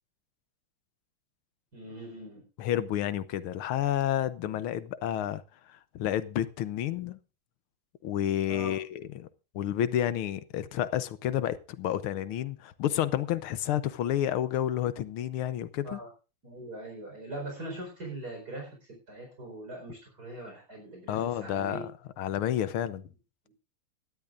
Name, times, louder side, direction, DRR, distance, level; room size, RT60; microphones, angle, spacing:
voice 1, 1.7-2.4 8.5-8.8 15.8-16.1 16.4-21.8, right 1 dB, 45° right, 5.1 m, -41 dB
voice 2, 2.6-5.4 5.7-7.2 8.0-9.3 9.6-16.0 21.1-21.9 22.2-23.1, left 11 dB, 85° left, 1.7 m, -30 dB
19.0 x 12.5 x 2.5 m
omnidirectional pair, 2.3 m